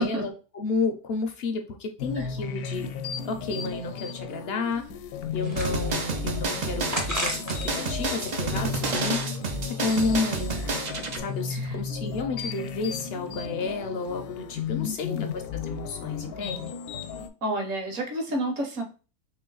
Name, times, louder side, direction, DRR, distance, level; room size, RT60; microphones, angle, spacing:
voice 1, 0.0-2.9 3.2-4.8 5.3-9.2 9.6-10.6 11.1-16.7, left 3 dB, 70° left, 5 dB, 0.6 m, -31 dB
sound 1, 2.0-17.3, left 7 dB, 85° left, 1.1 m, -35 dB
sound 2, 4.9-6.2 6.9-7.8 8.2-9.4, right 1 dB, 20° right, 0.5 m, -34 dB
sound 3, 5.6-11.2, right 3 dB, 90° right, 0.3 m, -30 dB
voice 2, 14.8-15.3 17.4-18.8, right 1 dB, 60° right, 3 dB, 1.3 m, -30 dB
3.1 x 3.1 x 3.8 m, 0.34 s
omnidirectional pair, 1.6 m